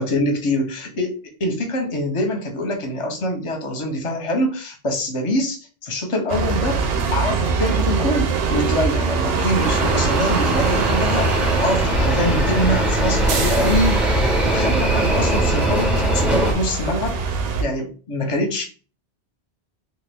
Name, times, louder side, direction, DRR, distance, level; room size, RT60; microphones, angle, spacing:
voice 1, 0.0-6.8 7.1-17.2 17.6-18.6, left 1 dB, 35° left, 3 dB, 0.7 m, -24 dB
sound 1, 6.3-17.6, right 4 dB, 70° right, 0.8 m, -23 dB
sound 2, 9.6-16.5, right 1 dB, ahead, 0.4 m, -21 dB
2.9 x 2.3 x 3.4 m, 0.36 s
omnidirectional pair, 1.1 m